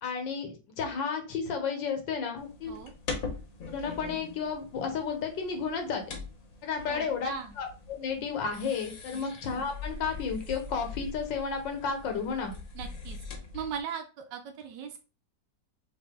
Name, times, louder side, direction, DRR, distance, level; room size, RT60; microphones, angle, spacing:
voice 1, 0.0-2.8 3.7-6.0 6.6-7.3 7.6-12.5, left 6 dB, 85° left, 5 dB, 1.7 m, -32 dB
sound 1, 2.4-13.8, left 3 dB, 55° left, 1.2 m, -42 dB
voice 2, 6.9-7.6 9.1-9.3 12.7-13.2 13.5-15.0, right 7 dB, 80° right, 5 dB, 1.3 m, -38 dB
5.5 x 2.6 x 3.6 m, 0.33 s
omnidirectional pair, 2.0 m